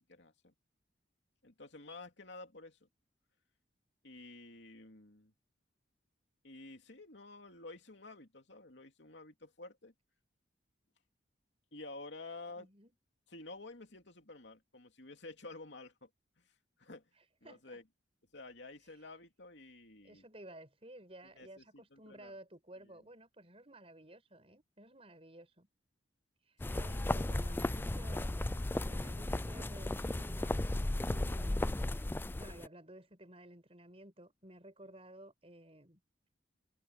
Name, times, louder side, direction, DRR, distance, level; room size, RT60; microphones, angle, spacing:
voice 1, 0.1-0.5 1.4-2.9 4.0-5.3 6.4-9.9 11.7-12.7 13.3-16.1 16.4-16.5 16.8-17.1 17.4-17.8 18.3-20.2 21.3-22.3 22.8-23.0 26.6-27.1, left 2 dB, 70° left, 2.9 m, -51 dB
voice 2, 12.6-12.9 17.2-17.8 20.0-25.7 26.4-28.3 28.7-30.6 31.0-31.8 32.4-36.0, right 1 dB, 30° right, 6.1 m, -54 dB
sound 1, 26.6-32.7, left 1 dB, 10° left, 0.3 m, -35 dB
head